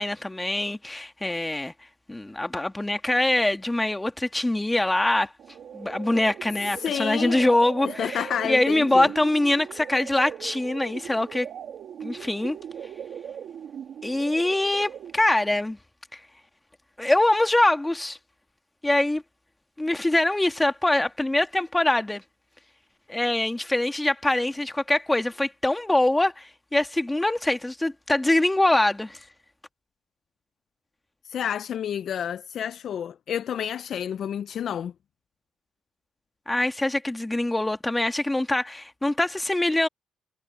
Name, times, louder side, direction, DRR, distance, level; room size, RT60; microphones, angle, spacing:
voice 1, 0.0-1.7 2.1-5.3 5.7-11.5 12.0-12.6 14.0-15.8 16.1-16.2 17.0-18.2 18.8-19.2 19.8-22.2 23.1-29.2 36.5-39.9, left 1 dB, 10° left, 1.8 m, -24 dB
sound 1, 5.4-15.4, right 8 dB, 65° right, 2.2 m, -39 dB
voice 2, 6.8-7.4 7.8-9.1 31.2-34.9, left 9 dB, 65° left, 0.4 m, -30 dB
cardioid pair, 90°, 0 cm